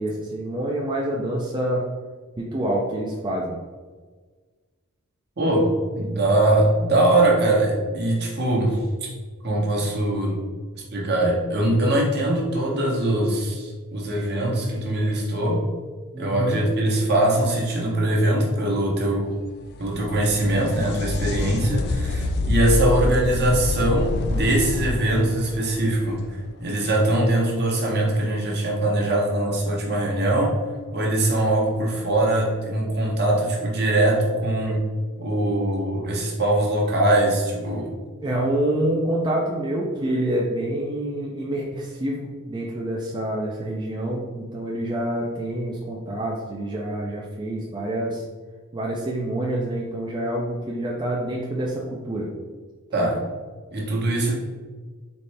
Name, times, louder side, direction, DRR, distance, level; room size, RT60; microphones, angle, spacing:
voice 1, 0.0-1.8 2.4-3.6 16.1-16.6 38.2-48.2 48.7-52.3 53.0-53.1, right 1 dB, 20° right, -3 dB, 0.4 m, -27 dB
voice 2, 5.4-9.1 9.4-10.4 10.7-15.6 16.2-19.3 19.8-30.5 30.9-34.8 35.2-37.9 52.9-53.2 53.7-54.3, right 1 dB, 50° right, -2 dB, 1.0 m, -22 dB
sound 1, 19.4-27.0 30.4-30.5 31.5-31.6, left 2 dB, 50° left, 0.3 m, -27 dB
4.1 x 3.2 x 3.3 m, 1.4 s
head